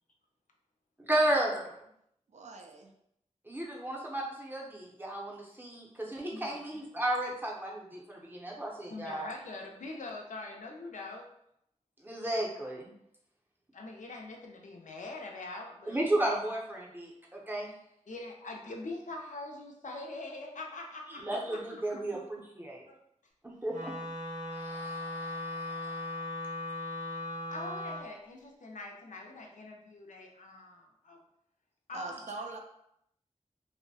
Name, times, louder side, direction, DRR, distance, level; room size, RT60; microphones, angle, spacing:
voice 1, 1.1-1.8 3.5-9.3 12.0-12.9 15.9-17.7 21.2-22.8 23.4-23.9 24.5-26.2, right 1 dB, 15° right, -2 dB, 0.6 m, -34 dB
voice 2, 2.3-2.9 21.1-22.0 31.9-32.6, right 3 dB, 65° right, 2 dB, 0.4 m, -44 dB
voice 3, 6.3-6.8 8.9-11.3 13.7-16.1 18.1-21.6 22.9-23.0 27.5-31.2 31.9-32.2, left 2 dB, 75° left, 1 dB, 0.4 m, -43 dB
Wind instrument woodwind instrument, 23.7-28.1, left 2 dB, 90° right, 0.7 m, -38 dB
2.6 x 2.0 x 2.6 m, 0.76 s
wide cardioid pair, 75°, 13 cm